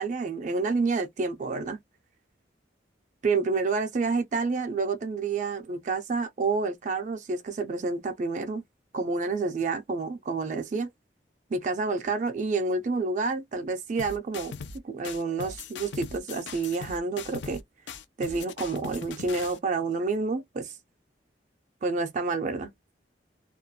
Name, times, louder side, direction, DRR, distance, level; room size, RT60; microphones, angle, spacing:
voice 1, 0.0-1.8 3.2-8.6 8.9-10.9 11.5-14.5 14.8-17.6 18.2-20.8 21.8-22.7, right 4 dB, 45° right, 0.4 m, -29 dB
sound 1, 14.0-14.8 15.0-17.6 17.9-19.6, left 5 dB, 90° left, 0.5 m, -40 dB
2.4 x 2.2 x 2.6 m
head